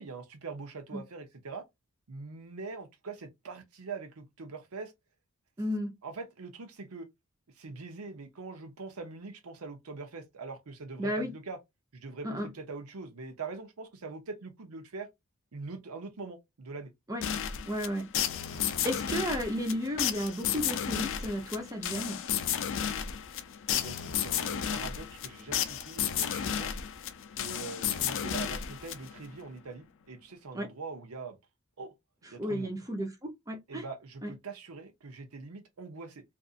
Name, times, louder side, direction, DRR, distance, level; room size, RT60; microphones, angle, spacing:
voice 1, 0.0-1.6 2.1-4.9 6.0-7.1 7.6-11.6 11.9-15.1 15.5-16.9 23.7-26.7 27.4-31.4 31.8-31.9 32.3-32.7 33.7-36.2, right 4 dB, 80° right, 0.7 m, -43 dB
voice 2, 5.6-5.9 11.0-11.3 12.2-12.5 17.1-17.2 17.7-18.1 18.5-22.2 30.5-30.7 32.4-33.8 34.2-34.3, equal, 15° right, 0.7 m, -33 dB
sound 1, 17.2-29.3, left 9 dB, 60° left, 0.4 m, -33 dB
2.5 x 2.5 x 2.4 m
head